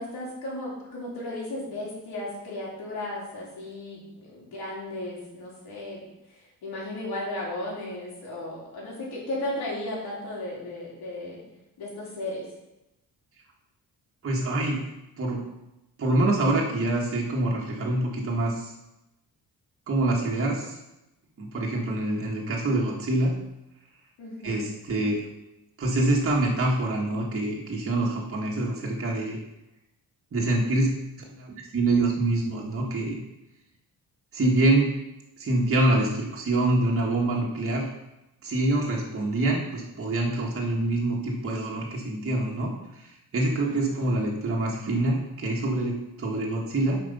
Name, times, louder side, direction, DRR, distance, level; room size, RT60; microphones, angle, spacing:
voice 1, 0.0-6.0 6.6-11.4 11.8-12.4 24.2-24.6 43.6-44.2, left 1 dB, 85° left, -5 dB, 3.2 m, -35 dB
voice 2, 14.2-14.8 15.2-15.4 16.0-18.7 19.9-20.8 21.4-23.3 24.4-25.2 25.8-29.4 30.3-30.9 31.2-33.1 34.3-34.9 35.4-37.9 38.4-47.0, right 2 dB, 35° right, -3 dB, 1.4 m, -25 dB
7.5 x 5.2 x 5.3 m, 0.93 s
wide cardioid pair, 165°, 37 cm